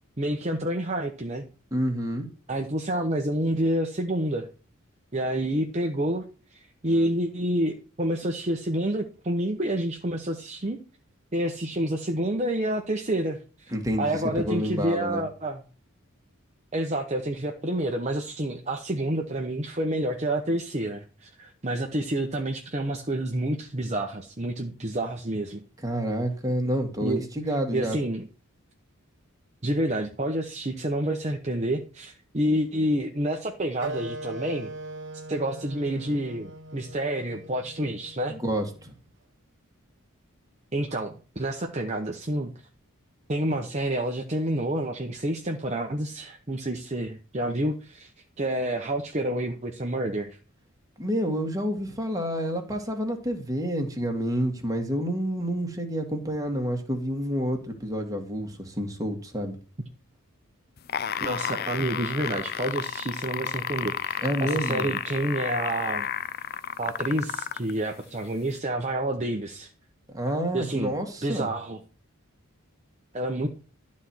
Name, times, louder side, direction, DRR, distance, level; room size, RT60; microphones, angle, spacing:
voice 1, 0.2-1.4 2.5-4.5 5.1-6.2 6.5-10.8 11.3-13.7 14.0-15.6 16.7-25.6 27.0-27.2 27.7-28.2 29.6-34.7 35.3-38.4 40.7-42.5 43.3-48.1 48.4-50.4 61.2-66.1 66.8-69.7 70.5-70.9 71.2-71.8 73.1-73.5, right 1 dB, 30° right, 3 dB, 0.9 m, -28 dB
voice 2, 1.7-2.3 13.7-14.1 14.4-15.2 25.8-28.0 38.3-38.9 51.0-59.6 64.2-64.9 70.1-71.5, equal, 15° right, 3 dB, 1.9 m, -28 dB
Wind instrument woodwind instrument, 33.8-38.9, right 2 dB, 55° right, 1.5 m, -40 dB
sound 1, 60.8-67.7 68.6-68.7, left 9 dB, 45° left, 0.5 m, -31 dB
12.5 x 4.3 x 7.8 m, 0.36 s
head